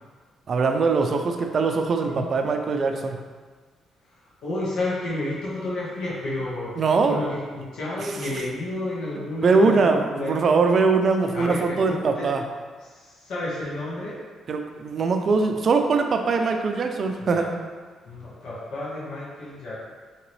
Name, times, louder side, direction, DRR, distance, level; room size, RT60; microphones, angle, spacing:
voice 1, 0.5-3.2 6.8-7.2 9.4-12.4 14.5-17.5, right 4 dB, 50° right, 5 dB, 0.4 m, -22 dB
voice 2, 4.4-6.7 7.1-10.5 11.3-12.3 12.9-14.2 17.2-17.5 18.0-19.7, left 2 dB, 75° left, -8 dB, 1.2 m, -31 dB
3.8 x 2.9 x 3.1 m, 1.5 s
cardioid pair, 90°, 0 cm